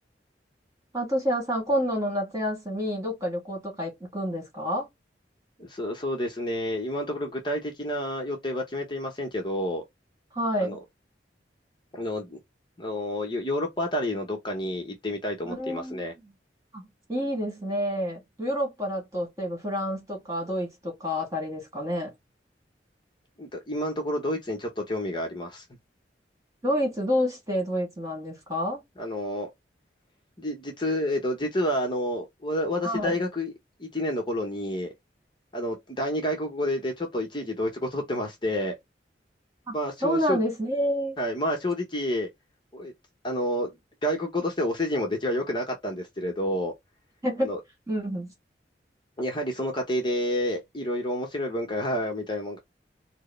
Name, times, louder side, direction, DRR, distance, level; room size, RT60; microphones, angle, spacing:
voice 1, 0.9-4.9 10.3-10.8 15.4-16.0 16.7-22.1 26.6-28.8 32.8-33.2 39.7-39.8 40.0-41.2 47.2-47.5 47.9-48.3, equal, 20° right, 2.1 m, -28 dB
voice 2, 5.6-9.8 10.6-10.8 11.9-12.4 12.8-16.1 23.4-25.6 29.0-29.5 30.4-33.5 33.8-34.9 35.5-38.7 39.7-40.4 41.2-42.3 42.7-42.9 43.2-43.7 44.0-46.7 47.4-47.6 49.2-52.6, left 1 dB, 25° left, 0.9 m, -29 dB
4.5 x 2.1 x 3.2 m
head